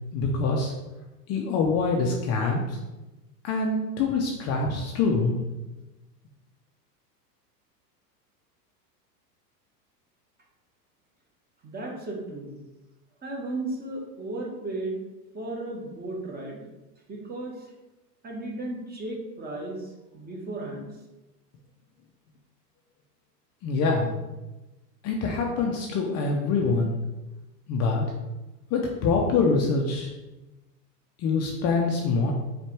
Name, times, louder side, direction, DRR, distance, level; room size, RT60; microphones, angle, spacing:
voice 1, 0.1-0.7 1.3-2.8 3.4-5.3 23.6-24.1 25.0-27.0 27.7-28.0 28.7-30.1 31.2-32.3, left 4 dB, 30° left, 0 dB, 0.6 m, -25 dB
voice 2, 11.6-12.6 13.2-15.0 15.3-16.7 17.1-17.5 18.2-20.9, right 2 dB, 20° right, -1 dB, 1.1 m, -35 dB
4.6 x 2.5 x 4.4 m, 1.0 s
hypercardioid pair, 105°, 49 cm